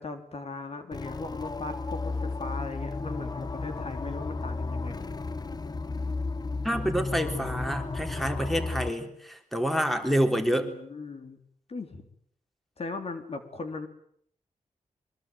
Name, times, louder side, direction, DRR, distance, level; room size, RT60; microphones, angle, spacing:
voice 1, 0.0-5.0 10.6-11.4 11.7-12.1 12.8-13.9, left 3 dB, 55° left, 6 dB, 3.5 m, -38 dB
sound 1, 0.9-8.9, left 3 dB, 30° left, 1.0 m, -33 dB
voice 2, 6.6-10.7, equal, ahead, 6 dB, 3.7 m, -28 dB
24.0 x 22.0 x 9.4 m, 0.67 s
wide cardioid pair, 110°, 13 cm